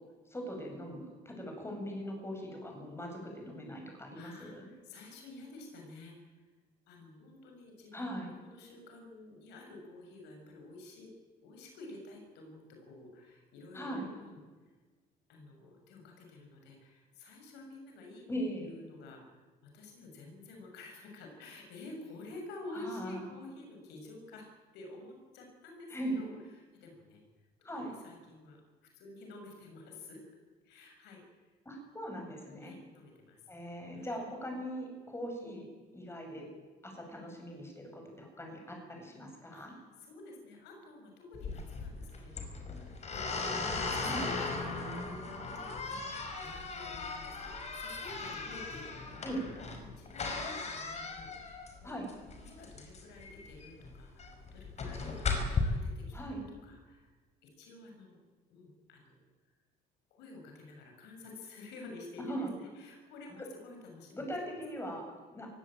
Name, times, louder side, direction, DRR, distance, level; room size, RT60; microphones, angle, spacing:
voice 1, 0.3-4.7 7.9-8.3 13.7-14.1 18.3-18.7 22.7-23.2 25.9-26.2 27.6-27.9 31.7-32.7 33.5-35.7 35.9-36.5 36.8-39.7 44.0-44.2 49.2-49.4 51.8-52.1 56.1-56.4 62.2-62.5 64.1-65.5, equal, 15° left, 2 dB, 7.7 m, -40 dB
voice 2, 4.1-6.5 6.9-11.1 11.4-14.7 15.3-18.3 18.5-30.2 30.6-31.5 32.6-33.4 33.9-34.2 39.5-39.7 40.0-43.6 43.9-44.8 45.2-49.3 49.6-52.0 52.4-56.1 56.6-57.1 57.4-58.2 58.5-59.5 60.1-64.3, left 2 dB, 85° left, 3 dB, 7.0 m, -50 dB
sound 1, 41.3-55.6, left 4 dB, 40° left, 5.3 m, -37 dB
22.5 x 17.0 x 9.1 m, 1.3 s
cardioid pair, 110°, 17 cm